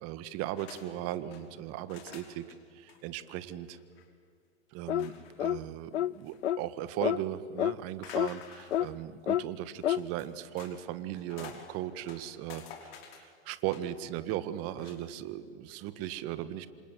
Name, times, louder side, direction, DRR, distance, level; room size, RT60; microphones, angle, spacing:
voice 1, 0.0-2.4 2.7-3.8 4.7-5.1 5.4-16.7, right 12 dB, 45° right, 13 dB, 1.8 m, -37 dB
sound 1, 0.6-0.9 1.1-1.4 1.9-2.6 2.9-3.0 3.3-3.4 3.8-4.1 5.0-5.5 5.9-6.7 8.0-8.9 9.8-10.7 11.1-11.7 12.0-14.0 14.7-15.0, left 8 dB, 60° left, 5.1 m, -50 dB
sound 2, 4.9-5.1 5.4-5.6 5.9-6.1 6.4-6.6 7.0-7.2 7.6-7.7 8.1-8.3 8.7-8.9 9.3-9.4 9.8-10.0, left 12 dB, 85° left, 0.6 m, -28 dB
27.0 x 27.0 x 7.8 m, 2.3 s
hypercardioid pair, 105°, 34 cm